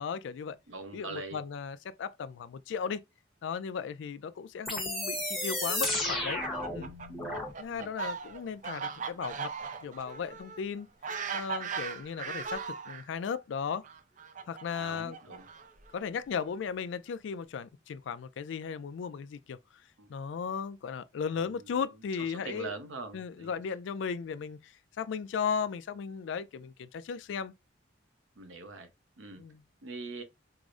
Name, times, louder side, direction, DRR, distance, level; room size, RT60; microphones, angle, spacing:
voice 1, 0.0-0.6 0.9-3.0 3.4-6.4 6.7-6.9 7.6-9.5 9.8-10.9 11.3-13.8 14.5-15.2 15.9-19.6 20.1-22.7 23.1-27.5 29.4-29.6, left 6 dB, 70° left, 0.3 m, -36 dB
voice 2, 0.7-1.4 7.7-7.9 14.8-15.5 20.0-20.1 21.4-21.8 22.2-23.5 28.4-28.9 29.2-29.4 29.8-30.2, right 3 dB, 80° right, 0.8 m, -43 dB
sound 1, 4.7-7.5, left 1 dB, ahead, 0.9 m, -33 dB
Fowl, 6.1-13.0 13.8-15.9, right 6 dB, 40° right, 0.4 m, -39 dB
4.8 x 2.0 x 2.4 m
head